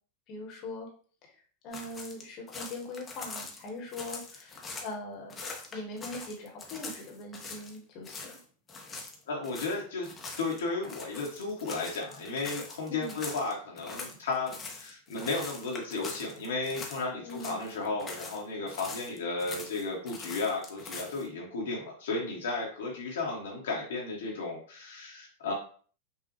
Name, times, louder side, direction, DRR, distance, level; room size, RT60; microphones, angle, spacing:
voice 1, 0.3-0.9 1.6-5.3 5.7-8.4 12.9-13.2 17.2-17.7, left 2 dB, 40° left, 0 dB, 1.2 m, -41 dB
sound 1, 1.7-4.9 5.3-7.8 8.0-8.4 8.7-17.0 17.3-18.4 18.7-21.3, left 3 dB, 20° left, 0.8 m, -43 dB
voice 2, 9.3-10.1 10.4-25.5, left 3 dB, 60° left, -2 dB, 1.0 m, -34 dB
5.5 x 2.4 x 3.0 m, 0.43 s
figure-of-eight pair, 90°, 0 cm